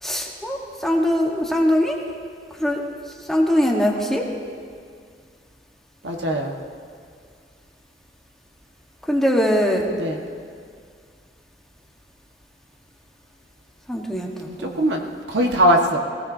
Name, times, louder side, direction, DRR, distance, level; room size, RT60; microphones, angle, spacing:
voice 1, 0.0-2.0 2.5-2.8 3.2-4.3 9.1-9.9 13.9-14.8, equal, ahead, -1 dB, 1.3 m, -22 dB
voice 2, 6.0-6.6 9.9-10.3 14.5-15.0 15.3-16.0, equal, 85° right, 1 dB, 1.4 m, -21 dB
18.0 x 18.0 x 2.7 m, 2.2 s
head